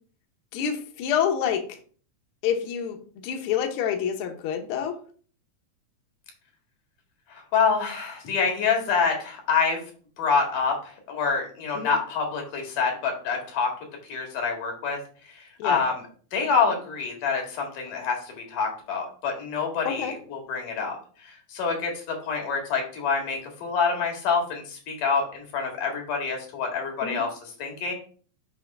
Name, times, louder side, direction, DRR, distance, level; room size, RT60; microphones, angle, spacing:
voice 1, 0.5-1.6 2.4-3.0 3.2-5.0 11.7-11.9 15.6-15.8 19.8-20.1 27.0-27.2, left 8 dB, 65° left, 4 dB, 1.4 m, -27 dB
voice 2, 7.3-9.8 10.2-13.7 14.1-15.0 15.3-16.0 16.3-21.0 21.2-27.9, left 5 dB, 80° left, 2 dB, 3.4 m, -27 dB
7.5 x 3.1 x 5.8 m, 0.43 s
omnidirectional pair, 3.6 m